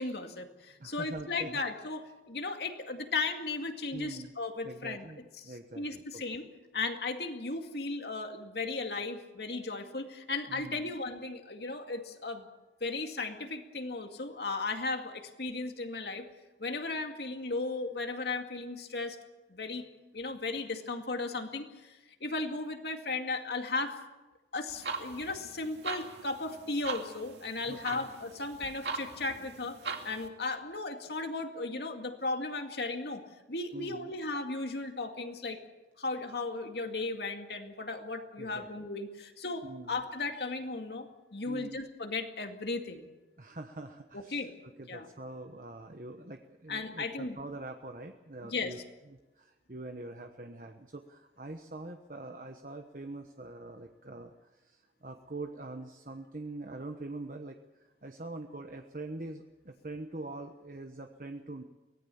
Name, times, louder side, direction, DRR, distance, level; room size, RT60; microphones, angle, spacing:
voice 1, 0.0-5.0 5.5-6.5 6.7-12.5 12.8-16.3 16.6-19.2 19.5-19.9 20.1-23.9 24.5-29.8 30.0-33.2 33.5-35.6 36.0-43.1 44.1-44.5 44.9-45.1 46.7-47.4 48.4-48.7, left 3 dB, 70° left, 5 dB, 2.3 m, -36 dB
voice 2, 0.8-1.6 3.9-4.3 4.6-6.2 10.5-10.9 27.7-28.1 33.7-34.2 38.4-38.7 39.6-40.0 41.5-41.8 43.4-44.5 44.8-48.8 49.1-57.6 58.0-61.6, right 2 dB, 50° right, 5 dB, 1.1 m, -44 dB
sound 1, 24.7-30.3, right 4 dB, 80° right, 2.4 m, -41 dB
23.5 x 18.0 x 7.1 m, 1.1 s
head